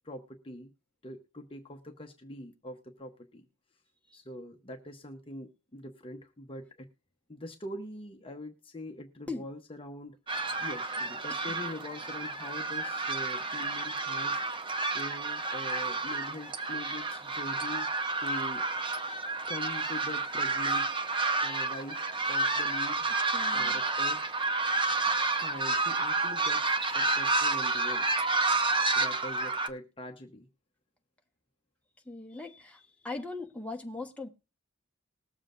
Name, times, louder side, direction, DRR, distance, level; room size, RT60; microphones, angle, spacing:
voice 1, 0.0-0.7 1.0-3.5 4.1-6.9 7.3-10.2 10.6-17.9 18.2-18.6 19.5-20.9 21.4-22.0 22.3-24.2 25.4-28.1 28.9-30.5, left 1 dB, 25° left, 0.9 m, -43 dB
sound 1, 10.3-29.7, right 3 dB, 25° right, 0.8 m, -30 dB
voice 2, 23.3-23.8 32.0-34.3, left 3 dB, 5° left, 1.1 m, -40 dB
20.5 x 7.3 x 2.5 m
head